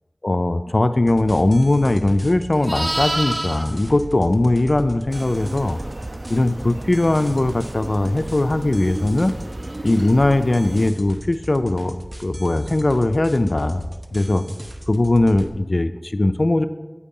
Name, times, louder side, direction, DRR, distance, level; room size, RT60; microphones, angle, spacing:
voice 1, 0.2-5.8 6.3-9.4 9.8-11.9 12.2-13.8 14.1-14.4 14.9-16.6, left 2 dB, 75° left, 9 dB, 0.3 m, -19 dB
sound 1, 1.1-15.5, right 1 dB, 25° right, 0.8 m, -37 dB
Livestock farm animals working animals, 1.9-5.2 9.6-9.8, right 1 dB, 55° right, 0.8 m, -29 dB
sound 2, 5.1-10.9, right 1 dB, 85° right, 0.4 m, -34 dB
8.5 x 4.6 x 5.3 m, 1.2 s
wide cardioid pair, 40°, 0 cm